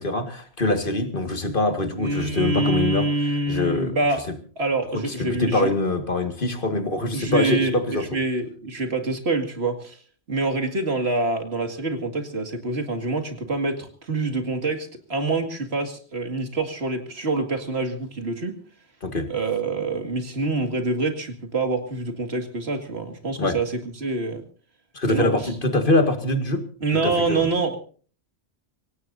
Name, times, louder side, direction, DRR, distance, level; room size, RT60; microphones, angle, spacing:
voice 1, 0.0-3.1 3.5-4.0 4.9-8.1 19.0-19.3 23.4-23.6 24.9-26.7 26.9-27.5, left 2 dB, 55° left, 7 dB, 2.1 m, -24 dB
voice 2, 2.0-4.2 4.6-5.7 7.1-10.0 10.3-18.6 19.3-24.4 25.1-25.3 26.8-27.8, right 3 dB, 75° right, 6 dB, 2.5 m, -26 dB
25.5 x 17.0 x 2.7 m, 0.42 s
omnidirectional pair, 1.1 m